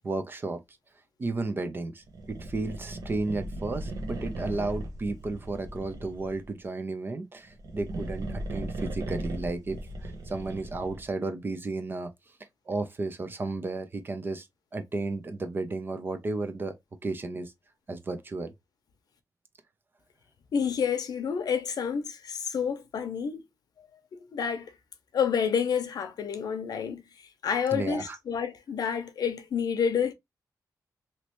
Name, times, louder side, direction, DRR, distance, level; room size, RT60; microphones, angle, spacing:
voice 1, 0.0-0.6 1.2-12.1 12.7-14.5 14.7-16.7 17.0-17.5 17.9-18.5 27.7-28.2, right 3 dB, 30° right, 0.6 m, -33 dB
sound 1, 2.1-6.5 7.4-11.1, right 1 dB, 75° right, 0.9 m, -37 dB
voice 2, 20.5-23.4 24.1-24.7 25.1-27.0 27.4-30.1, left 7 dB, 80° left, 0.7 m, -29 dB
3.1 x 2.8 x 3.0 m
wide cardioid pair, 150°, 7 cm